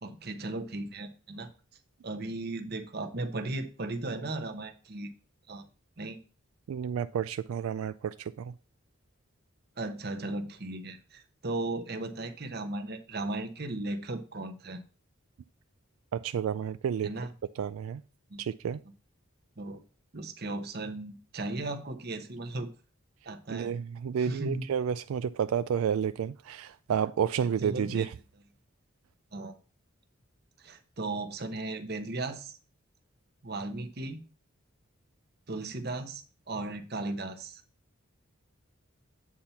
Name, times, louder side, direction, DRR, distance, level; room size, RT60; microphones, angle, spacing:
voice 1, 0.0-1.5 2.0-5.1 5.5-5.7 6.0-6.2 9.8-14.8 17.0-17.3 18.3-18.4 19.6-19.8 20.1-22.7 23.2-23.7 24.2-24.6 27.6-28.1 29.3-29.6 30.6-32.6 33.4-34.2 35.5-37.6, right 2 dB, 50° right, 1.0 m, -36 dB
voice 2, 6.7-8.5 16.1-17.1 17.6-18.0 18.4-18.8 23.5-28.1, right 8 dB, 85° right, 0.3 m, -31 dB
8.5 x 4.3 x 5.6 m
head